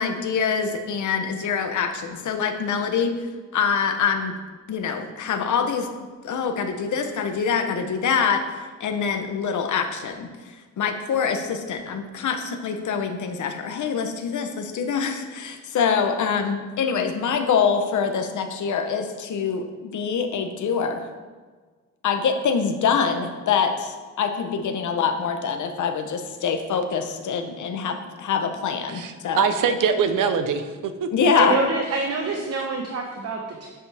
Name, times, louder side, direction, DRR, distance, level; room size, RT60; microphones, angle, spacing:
voice 1, 0.0-3.2 3.5-4.3 4.7-5.9 6.2-8.4 8.8-21.1 22.0-29.4 31.1-31.6, left 6 dB, 70° left, 6 dB, 1.0 m, -25 dB
voice 2, 28.9-31.1, right 6 dB, 80° right, 9 dB, 0.8 m, -23 dB
voice 3, 31.3-33.7, right 3 dB, 50° right, 1 dB, 1.1 m, -26 dB
10.5 x 7.8 x 3.5 m, 1.4 s
wide cardioid pair, 165°, 31 cm